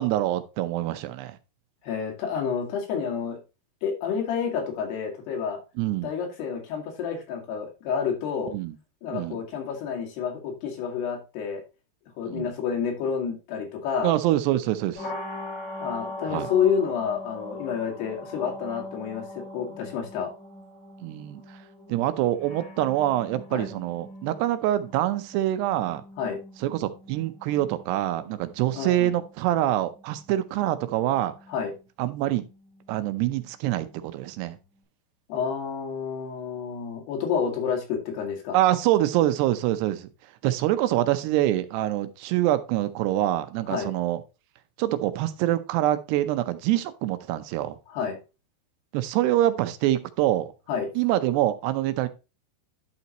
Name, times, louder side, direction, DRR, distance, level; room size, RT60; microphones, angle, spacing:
voice 1, 0.0-1.4 5.8-6.1 8.5-8.8 9.1-9.4 12.3-12.5 14.0-15.1 16.3-16.5 21.0-21.6 21.9-26.0 26.6-31.3 32.0-32.5 32.9-34.6 38.5-40.1 40.4-44.2 44.8-47.8 48.9-50.5 51.0-52.1, right 14 dB, 80° right, 2.7 m, -25 dB
voice 2, 1.8-3.4 3.8-5.6 6.0-8.5 9.0-11.6 12.2-14.1 15.8-20.3 23.5-23.7 26.2-26.4 28.8-29.1 31.5-31.7 35.3-38.6 43.7-43.9 47.9-48.2 50.7-50.9, left 7 dB, 70° left, 4.0 m, -29 dB
sound 1, 15.0-34.8, left 1 dB, 45° left, 6.2 m, -42 dB
11.5 x 5.6 x 3.0 m
omnidirectional pair, 4.9 m